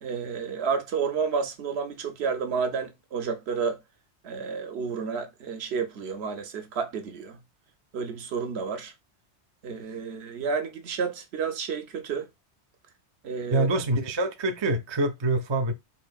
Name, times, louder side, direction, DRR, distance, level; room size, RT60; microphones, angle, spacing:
voice 1, 0.0-3.8 4.2-7.4 7.9-8.9 9.6-12.3 13.2-13.7, right 5 dB, 70° right, 1.0 m, -30 dB
voice 2, 13.5-15.7, right 2 dB, 45° right, 0.3 m, -25 dB
4.1 x 2.6 x 2.3 m
omnidirectional pair, 1.2 m